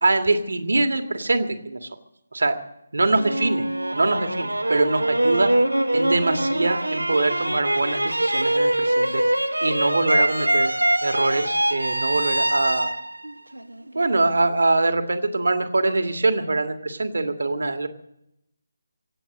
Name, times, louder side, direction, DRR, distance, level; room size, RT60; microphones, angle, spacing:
voice 1, 0.0-1.9 2.3-2.6 2.9-3.6 3.9-5.5 5.9-9.2 9.6-10.7 11.0-12.9 13.9-17.9, right 2 dB, 60° right, 7 dB, 1.8 m, -23 dB
sound 1, 3.1-14.2, right 1 dB, 80° right, 0.9 m, -23 dB
24.5 x 8.7 x 6.4 m, 0.81 s
figure-of-eight pair, 150°, 0 cm